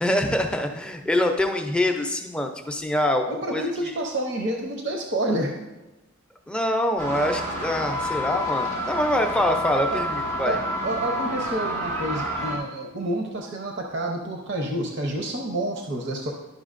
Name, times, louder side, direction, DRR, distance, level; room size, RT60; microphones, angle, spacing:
voice 1, 0.0-3.9 6.5-10.6, left 1 dB, 5° left, 4 dB, 0.5 m, -25 dB
voice 2, 3.3-5.5 9.9-10.0 10.4-16.3, right 1 dB, 55° right, 1 dB, 0.7 m, -29 dB
sound 1, 7.0-12.6, equal, 90° right, 2.7 m, -29 dB
10.5 x 5.8 x 2.5 m, 1.0 s
head